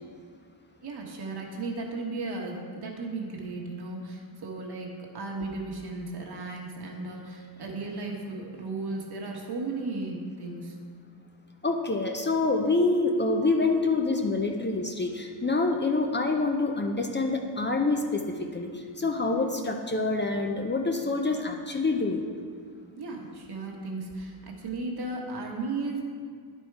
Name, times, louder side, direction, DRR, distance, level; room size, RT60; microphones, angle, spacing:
voice 1, 0.8-10.7 23.0-26.0, right 3 dB, 60° right, 0 dB, 1.3 m, -35 dB
voice 2, 11.6-22.2, left 3 dB, 25° left, 2 dB, 0.6 m, -26 dB
10.0 x 4.5 x 4.6 m, 2.1 s
cardioid pair, 95°, 43 cm